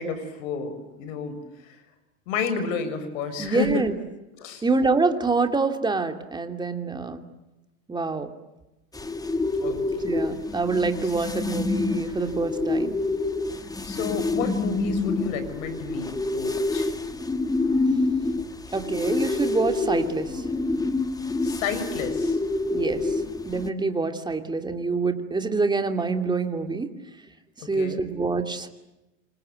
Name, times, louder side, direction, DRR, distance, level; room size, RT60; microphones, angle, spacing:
voice 1, 0.0-1.4 1.6-1.8 2.3-3.8 4.4-4.6 9.6-10.0 12.0-12.1 13.8-16.9 21.4-22.4 27.8-28.0, left 5 dB, 70° left, 10 dB, 6.8 m, -31 dB
voice 2, 3.4-4.0 4.6-7.2 7.9-8.3 10.0-13.0 18.7-20.4 22.7-26.9 27.7-28.7, right 3 dB, 10° right, 6 dB, 2.8 m, -26 dB
sound 1, 8.9-23.7, left 2 dB, 10° left, 1.5 m, -27 dB
28.5 x 26.5 x 7.8 m, 1.0 s
supercardioid pair, 130°, 42 cm